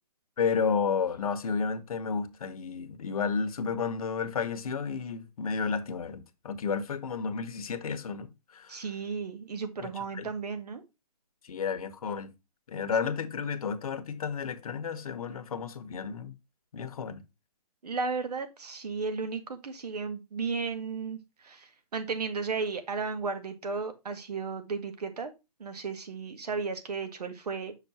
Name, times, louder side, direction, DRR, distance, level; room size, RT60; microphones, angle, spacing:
voice 1, 0.4-8.8 9.8-9.9 10.1-10.3 11.4-12.3 12.7-16.3 16.7-17.2, left 5 dB, 65° left, 1.2 m, -32 dB
voice 2, 8.7-10.8 17.8-25.3 25.6-27.7, right 4 dB, 80° right, 1.8 m, -34 dB
6.5 x 6.0 x 2.8 m
hypercardioid pair, 155°, 20 cm